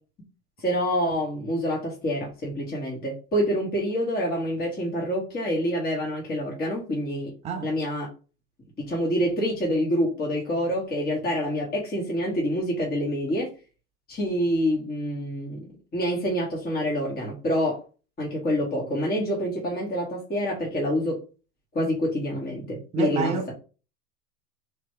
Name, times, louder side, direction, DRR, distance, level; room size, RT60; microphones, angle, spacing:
voice 1, 0.6-7.3 7.6-8.1 8.9-13.5 14.1-15.7 15.9-17.8 18.2-21.2 21.7-23.3, equal, 20° left, 1.4 m, -27 dB
voice 2, 22.9-23.5, right 4 dB, 15° right, 0.4 m, -27 dB
3.4 x 2.8 x 4.6 m
hypercardioid pair, 115°, 49 cm